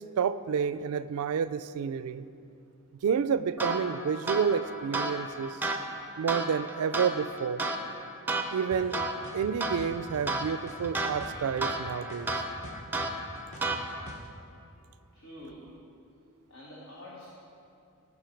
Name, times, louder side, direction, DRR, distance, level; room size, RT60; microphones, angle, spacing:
voice 1, 0.0-2.3 3.0-5.6 6.2-7.6 8.5-9.0 9.3-12.3, right 7 dB, 75° right, 14 dB, 0.3 m, -29 dB
sound 1, 3.6-14.2, right 2 dB, 10° right, 0.5 m, -34 dB
sound 2, 8.7-8.8 9.2-10.2 10.7-11.8 12.1-14.3, equal, 30° left, 1.0 m, -45 dB
voice 2, 15.1-15.8 16.5-17.3, left 1 dB, 60° left, -5 dB, 1.4 m, -47 dB
16.5 x 5.5 x 4.5 m, 2.6 s
head